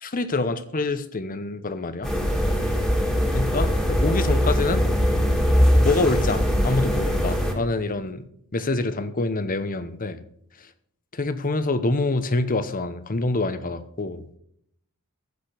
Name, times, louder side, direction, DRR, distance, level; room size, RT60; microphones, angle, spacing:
voice 1, 0.0-2.1 3.3-4.9 5.8-8.3 8.5-10.2 11.1-14.2, left 2 dB, 40° left, 11 dB, 0.9 m, -26 dB
sound 1, 2.0-7.5, equal, ahead, 2.1 m, -21 dB
14.5 x 5.2 x 6.6 m, 0.70 s
head